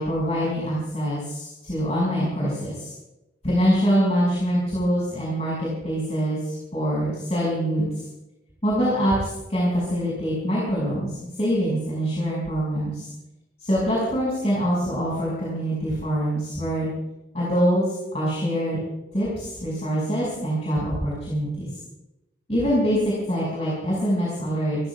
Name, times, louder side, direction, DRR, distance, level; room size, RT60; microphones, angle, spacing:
voice 1, 0.0-2.9 3.4-8.0 8.6-13.1 13.6-16.9 17.3-18.8 19.1-21.7 22.5-24.8, equal, 35° left, -6 dB, 5.9 m, -24 dB
28.0 x 15.5 x 2.4 m, 0.94 s
head